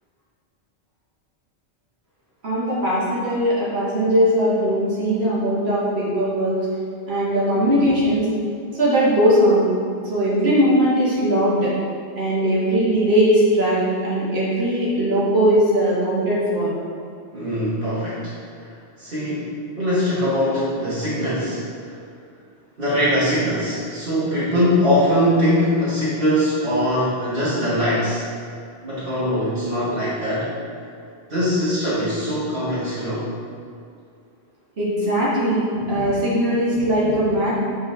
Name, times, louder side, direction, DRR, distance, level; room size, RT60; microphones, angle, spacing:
voice 1, 2.4-6.6 7.1-8.3 8.7-9.7 10.1-11.7 12.1-16.7 34.8-37.5, equal, 75° right, -8 dB, 2.0 m, -19 dB
voice 2, 17.3-18.3 19.0-21.9 22.8-28.2 28.8-30.5 31.3-33.3, equal, 60° right, -11 dB, 1.8 m, -22 dB
8.0 x 4.6 x 3.3 m, 2.4 s
omnidirectional pair, 1.1 m